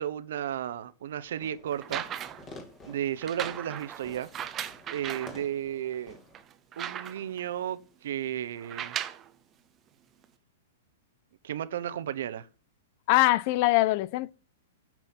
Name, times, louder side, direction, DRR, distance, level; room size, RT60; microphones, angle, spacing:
voice 1, 0.0-2.1 2.8-4.3 4.9-6.2 6.8-9.0 11.4-12.5, right 10 dB, 70° right, 0.9 m, -33 dB
Fireworks, 1.3-6.4, left 2 dB, 20° left, 2.4 m, -50 dB
sound 1, 1.7-2.5 3.2-5.4 5.9-6.0 6.3-7.4 8.6-9.3 10.2-10.3, right 10 dB, 20° right, 0.7 m, -37 dB
voice 2, 13.1-14.3, left 19 dB, 45° left, 0.5 m, -23 dB
9.0 x 6.1 x 7.4 m
hypercardioid pair, 150°, 0 cm